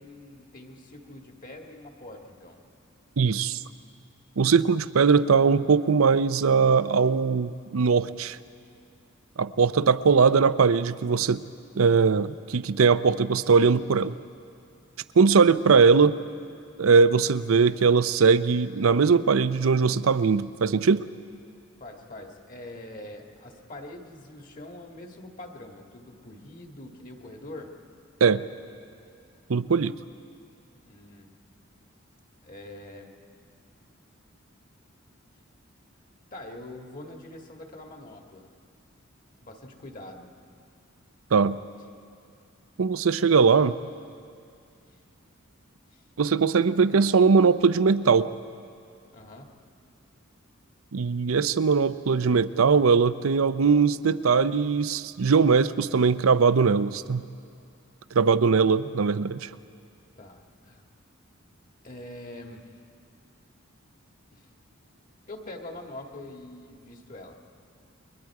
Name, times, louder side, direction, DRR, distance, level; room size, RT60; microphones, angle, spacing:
voice 1, 0.0-2.6 21.8-27.7 30.8-31.3 32.4-33.1 36.3-38.5 39.4-40.3 45.9-46.0 49.1-49.6 60.2-60.8 61.8-62.6 64.3-64.5 65.3-67.4, left 1 dB, 40° left, 2 dB, 2.0 m, -44 dB
voice 2, 3.2-3.6 4.4-8.4 9.4-11.4 11.8-14.1 15.2-16.2 16.8-21.1 28.2-28.4 29.5-29.9 41.3-41.6 42.8-43.7 46.2-48.3 50.9-57.3 58.1-59.5, right 5 dB, 85° right, 14 dB, 0.6 m, -20 dB
29.5 x 22.5 x 4.8 m, 2.4 s
head